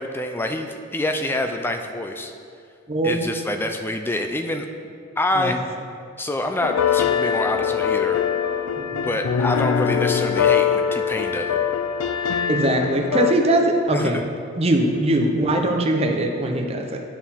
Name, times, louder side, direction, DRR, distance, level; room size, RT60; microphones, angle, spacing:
voice 1, 0.0-2.3 3.0-4.7 5.2-5.6 6.2-8.2 8.9-11.6 13.9-14.2, left 1 dB, 10° left, 5 dB, 0.3 m, -26 dB
voice 2, 2.9-3.2 5.4-5.5 8.8-9.1 12.5-14.2 14.6-17.0, right 1 dB, 30° right, 2 dB, 0.6 m, -21 dB
sound 1, 6.6-13.3, left 7 dB, 80° left, 0.4 m, -22 dB
11.0 x 4.5 x 3.6 m, 2.4 s
head